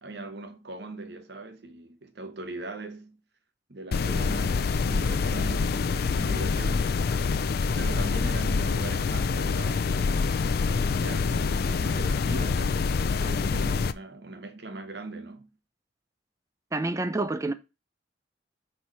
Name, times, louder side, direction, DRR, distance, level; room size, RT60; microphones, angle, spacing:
voice 1, 0.0-3.2 3.7-7.0 7.7-15.5, right 2 dB, 60° right, 1.0 m, -40 dB
sound 1, 3.9-13.9, left 4 dB, 55° left, 0.4 m, -26 dB
voice 2, 16.7-17.5, right 2 dB, 15° right, 0.4 m, -28 dB
5.6 x 4.4 x 4.7 m
head